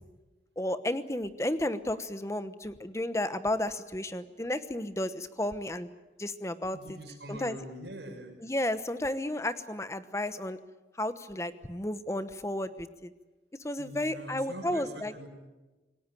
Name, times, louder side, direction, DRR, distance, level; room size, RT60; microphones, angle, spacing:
voice 1, 0.6-5.9 6.2-7.0 7.3-7.6 8.4-10.6 11.0-13.1 13.6-15.1, left 1 dB, 15° left, 12 dB, 1.0 m, -32 dB
voice 2, 6.7-8.3 13.8-15.3, right 1 dB, 80° right, 3 dB, 6.4 m, -43 dB
27.5 x 18.5 x 9.2 m, 1.2 s
head